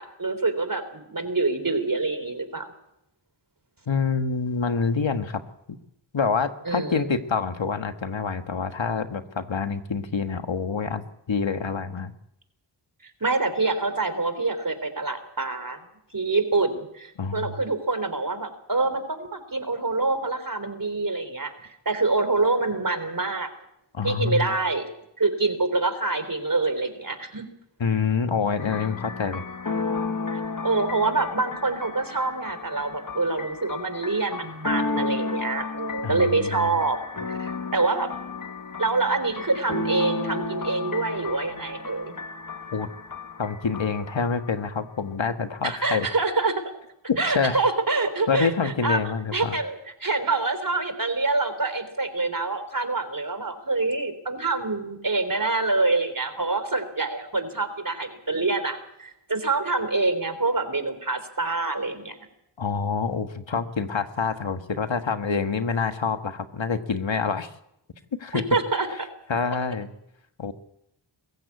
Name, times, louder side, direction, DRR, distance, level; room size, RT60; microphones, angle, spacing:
voice 1, 0.0-2.6 6.7-7.1 13.2-15.8 16.1-23.5 24.0-24.8 25.2-27.4 30.3-37.0 37.3-38.1 38.8-42.2 45.6-46.6 47.2-49.0 49.3-62.2 68.3-69.1, right 3 dB, 45° right, 10 dB, 3.5 m, -26 dB
voice 2, 3.9-5.4 6.1-12.1 17.2-17.6 23.9-24.6 27.8-29.4 36.0-36.7 42.7-42.9 43.4-46.1 47.1-47.6 48.3-49.5 62.6-67.5 68.2-68.4 69.3-69.9 70.4-70.5, left 5 dB, 70° left, 8 dB, 1.6 m, -27 dB
sound 1, 28.6-44.7, left 3 dB, 40° left, 2.0 m, -33 dB
22.5 x 14.5 x 8.4 m, 0.80 s
cardioid pair, 45°, 47 cm